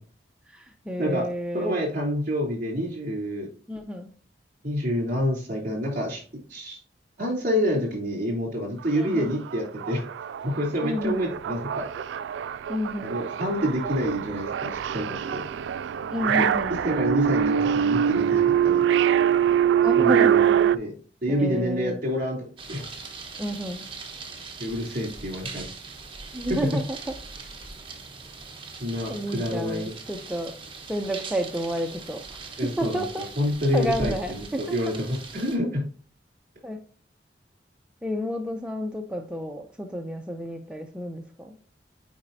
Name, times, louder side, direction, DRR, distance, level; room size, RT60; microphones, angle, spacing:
voice 1, 0.5-1.8 3.7-4.1 9.0-9.3 10.8-11.2 12.7-13.2 16.1-16.8 19.8-20.7 21.3-22.0 23.4-23.9 26.3-27.1 29.1-30.6 30.9-33.3 33.7-34.8 36.6-36.8 38.0-41.6, equal, 5° right, 3 dB, 0.5 m, -31 dB
voice 2, 1.5-3.5 4.6-6.2 6.5-6.8 7.2-10.0 10.4-11.8 13.0-15.4 16.4-16.5 16.8-18.8 20.0-20.4 20.7-20.9 21.2-22.4 22.7-22.8 24.6-25.7 28.8-29.9 32.6-33.0 33.4-34.1 34.6-35.8, equal, 50° right, -2 dB, 3.0 m, -27 dB
sound 1, 8.8-8.9 9.2-20.8, right 9 dB, 90° right, 0.3 m, -24 dB
sound 2, 22.6-35.6, right 4 dB, 30° right, 1.1 m, -40 dB
8.6 x 5.0 x 2.7 m, 0.44 s
head